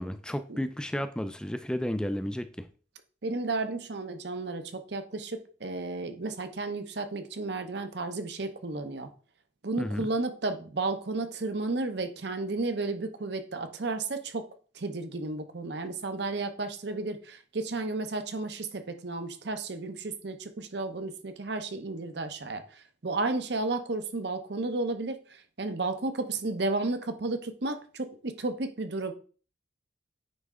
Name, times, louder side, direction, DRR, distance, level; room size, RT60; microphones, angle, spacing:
voice 1, 0.0-2.7 9.8-10.1, equal, 5° left, 0.4 m, -32 dB
voice 2, 3.2-9.1 9.6-14.4 14.7-29.1, right 3 dB, 60° right, 0.8 m, -33 dB
9.4 x 3.3 x 3.6 m
head